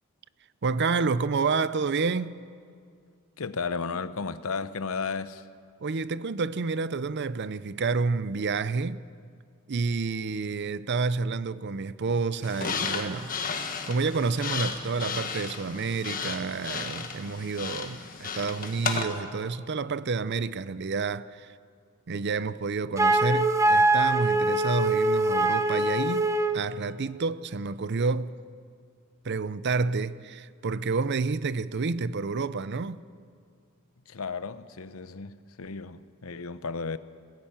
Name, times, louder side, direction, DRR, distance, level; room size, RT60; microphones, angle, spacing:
voice 1, 0.6-2.4 5.8-9.0 9.7-21.5 22.1-26.3 26.5-28.4 29.2-33.0, right 4 dB, 50° right, 0.6 m, -29 dB
voice 2, 3.4-5.5 34.1-37.0, left 5 dB, 70° left, 0.8 m, -34 dB
sound 1, 12.4-19.0, left 5 dB, 40° left, 1.5 m, -34 dB
Wind instrument woodwind instrument, 23.0-26.7, right 2 dB, 15° right, 0.7 m, -23 dB
21.0 x 16.5 x 8.9 m
head